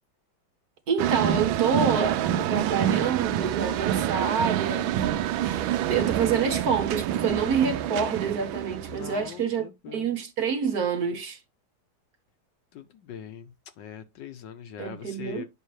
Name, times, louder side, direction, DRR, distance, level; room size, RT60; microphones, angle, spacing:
voice 1, 0.9-5.0 5.4-9.7 9.9-11.4 14.8-15.4, right 6 dB, 55° right, 1.3 m, -27 dB
sound 1, 1.0-9.3, right 11 dB, 80° right, 1.4 m, -27 dB
voice 2, 8.9-10.2 12.7-15.5, left 8 dB, 70° left, 1.4 m, -42 dB
8.4 x 5.7 x 3.1 m
omnidirectional pair, 2.2 m